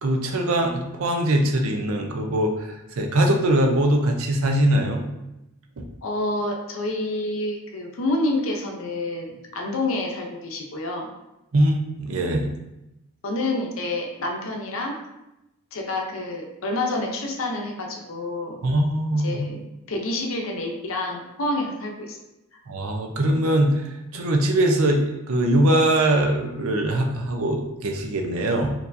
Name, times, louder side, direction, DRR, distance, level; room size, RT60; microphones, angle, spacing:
voice 1, 0.0-5.0 5.8-5.9 11.5-12.5 18.6-19.4 22.7-28.7, right 1 dB, 70° right, 3 dB, 0.6 m, -22 dB
voice 2, 6.0-11.1 13.2-15.0 15.7-18.6 19.2-22.2, left 2 dB, 65° left, 1 dB, 0.6 m, -28 dB
4.5 x 2.7 x 2.6 m, 0.92 s
head